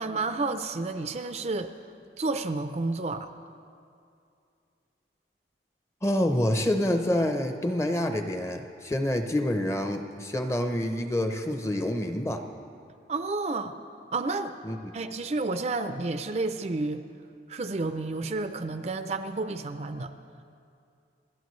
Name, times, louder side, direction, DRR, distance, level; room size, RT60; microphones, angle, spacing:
voice 1, 0.0-1.7 2.2-3.3 13.1-13.8 14.1-14.5 14.9-17.0 17.5-20.1, right 3 dB, 40° right, 8 dB, 0.5 m, -30 dB
voice 2, 6.0-12.5 14.6-14.9, left 1 dB, 15° left, 6 dB, 0.7 m, -27 dB
29.5 x 11.0 x 3.2 m, 2.5 s
head